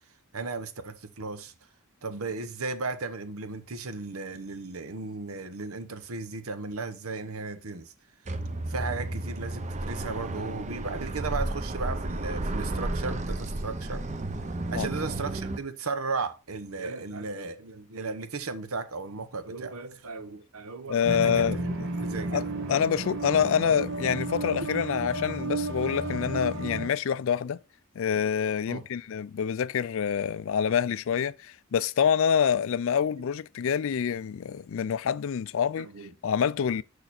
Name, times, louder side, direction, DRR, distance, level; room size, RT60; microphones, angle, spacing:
voice 1, 0.3-1.5 2.0-7.9 8.7-14.0 14.7-21.5 22.0-22.5 28.7-28.9 32.6-32.7 35.8-36.1, right 4 dB, 85° right, 1.0 m, -35 dB
sound 1, 8.3-15.6, right 2 dB, 35° right, 0.7 m, -32 dB
voice 2, 20.9-21.9 22.3-22.4 22.7-27.6 28.0-35.9 36.2-36.8, left 7 dB, 65° left, 0.4 m, -26 dB
sound 2, 21.0-26.9, right 2 dB, 65° right, 1.3 m, -32 dB
6.7 x 6.5 x 4.2 m
head